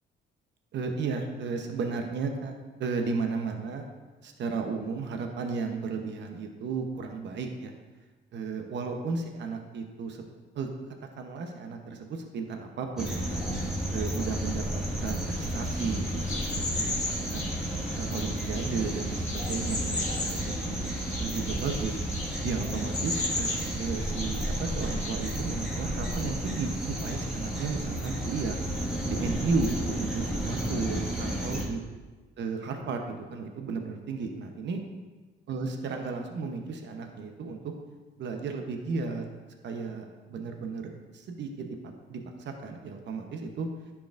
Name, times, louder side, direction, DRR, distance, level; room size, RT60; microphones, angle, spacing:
voice 1, 0.7-2.5 2.8-3.8 4.2-7.7 8.3-10.2 10.5-10.7 11.2-13.4 13.9-17.5 18.0-22.0 22.4-28.6 29.1-31.8 32.4-34.8 35.5-37.7 38.2-39.2 39.6-41.8 42.1-43.7, right 4 dB, 65° right, 4 dB, 0.9 m, -34 dB
sound 1, 13.0-31.7, right 1 dB, 5° right, 1.9 m, -32 dB
sound 2, 15.3-25.1, left 2 dB, 35° left, 1.7 m, -37 dB
10.5 x 4.8 x 2.5 m, 1.3 s
cardioid pair, 90°, 20 cm